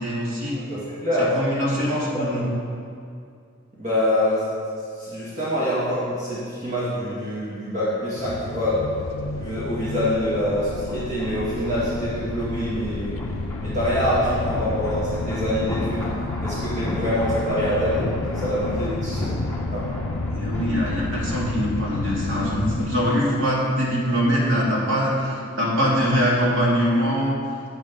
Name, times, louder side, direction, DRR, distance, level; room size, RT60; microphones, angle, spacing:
voice 1, 0.0-0.6 1.2-2.4 20.3-27.4, equal, 70° right, -5 dB, 2.5 m, -23 dB
voice 2, 0.7-1.3 1.8-1.9 2.1-2.5 3.8-4.4 5.0-8.8 9.4-13.2 13.6-16.1 16.4-19.2 19.7-19.9, equal, 35° right, -10 dB, 2.1 m, -25 dB
sound 1, 8.1-23.0, left 2 dB, 80° left, 0.5 m, -30 dB
sound 2, 9.4-23.2 23.4-23.6, left 1 dB, 10° left, 1.5 m, -36 dB
12.5 x 8.0 x 3.7 m, 2.3 s
head